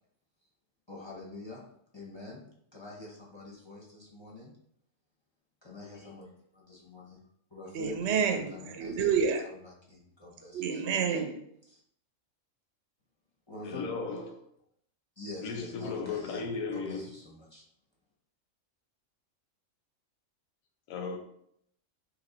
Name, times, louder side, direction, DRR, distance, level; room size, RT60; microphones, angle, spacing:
voice 1, 0.9-1.6 1.9-2.4 2.7-4.5 5.6-7.2 7.5-8.2 8.5-9.1 9.9-10.8 11.7-11.8 13.5-13.9 15.2-17.6, left 2 dB, 30° left, 0.6 m, -45 dB
voice 2, 7.7-9.4 10.5-11.4, right 6 dB, 65° right, 0.7 m, -29 dB
voice 3, 13.6-14.4 15.4-17.1 20.9-21.2, left 4 dB, 90° left, 1.0 m, -36 dB
3.1 x 3.0 x 3.8 m
omnidirectional pair, 1.4 m